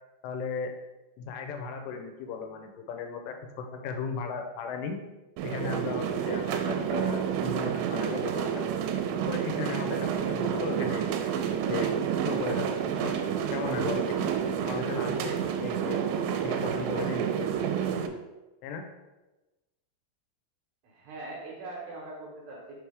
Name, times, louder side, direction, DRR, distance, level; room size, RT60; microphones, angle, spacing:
voice 1, 0.2-0.7 1.2-5.0 5.4-8.6 9.3-11.0 11.5-11.9 12.2-13.2 13.5-14.3 14.6-16.0 16.4-17.5 18.6-18.9, left 5 dB, 85° left, 4 dB, 2.7 m, -36 dB
sound 1, 5.4-18.1, right 8 dB, 85° right, 2.7 m, -29 dB
voice 2, 20.8-22.8, right 2 dB, 70° right, -3 dB, 2.4 m, -41 dB
6.1 x 4.6 x 3.3 m, 1.1 s
omnidirectional pair, 4.9 m